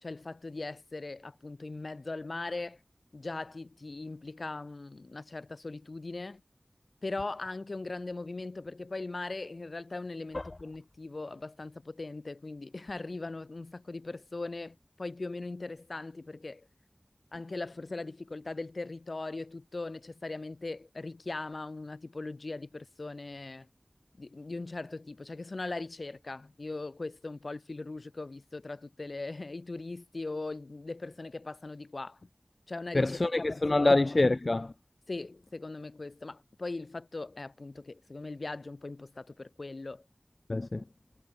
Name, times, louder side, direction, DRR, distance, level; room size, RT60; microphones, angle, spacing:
voice 1, 0.0-2.8 3.1-6.4 7.0-16.7 17.3-23.7 24.2-32.3 32.7-33.2 33.5-34.2 35.1-40.0, left 3 dB, 75° left, 1.5 m, -40 dB
voice 2, 32.9-34.7 40.5-40.8, left 2 dB, 60° left, 0.6 m, -26 dB
wide cardioid pair, 50°, 0 cm